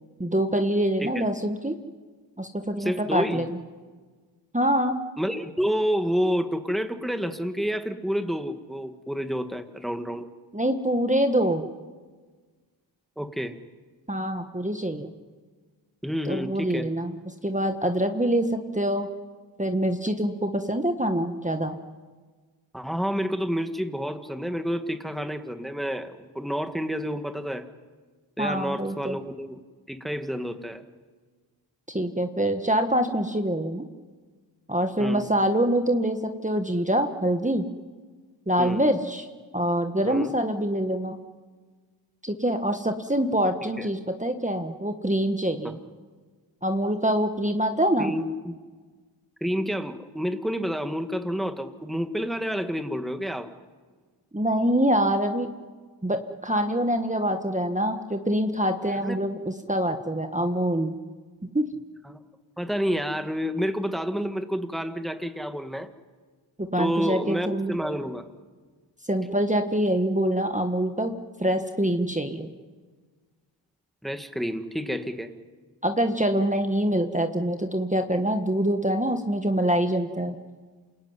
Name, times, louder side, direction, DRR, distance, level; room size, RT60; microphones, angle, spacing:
voice 1, 0.2-1.7 2.4-3.6 4.5-5.0 10.5-11.6 14.1-15.1 16.3-17.1 17.4-19.1 19.6-21.8 28.4-29.2 31.9-33.8 34.7-37.6 38.5-39.3 39.5-41.2 42.2-45.8 46.6-48.1 54.3-55.5 56.0-61.0 61.5-61.7 66.6-67.7 69.1-71.1 71.4-72.5 75.8-80.3, right 1 dB, 15° right, 6 dB, 1.6 m, -25 dB
voice 2, 2.8-3.4 5.2-10.3 13.2-13.6 16.0-16.9 22.7-27.7 28.4-29.6 29.9-30.8 35.0-35.3 38.6-38.9 40.0-40.3 43.8-43.9 45.6-45.7 48.0-48.5 49.4-53.5 59.0-59.3 62.1-62.2 62.6-65.9 66.8-68.3 74.0-75.3, equal, ahead, 8 dB, 1.7 m, -29 dB
28.0 x 20.5 x 9.7 m, 1.4 s
wide cardioid pair, 55°, 47 cm